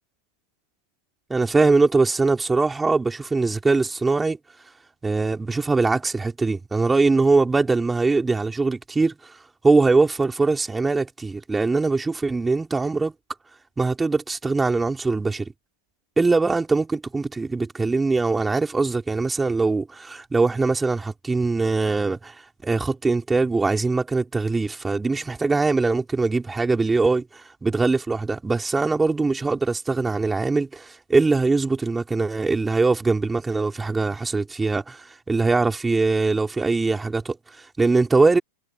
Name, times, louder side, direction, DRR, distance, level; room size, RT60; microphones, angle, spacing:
voice 1, 1.3-4.4 5.0-9.4 9.6-13.1 13.8-15.5 16.2-22.4 22.6-38.4, right 3 dB, 10° right, 4.4 m, -22 dB
figure-of-eight pair, 90°, 0 cm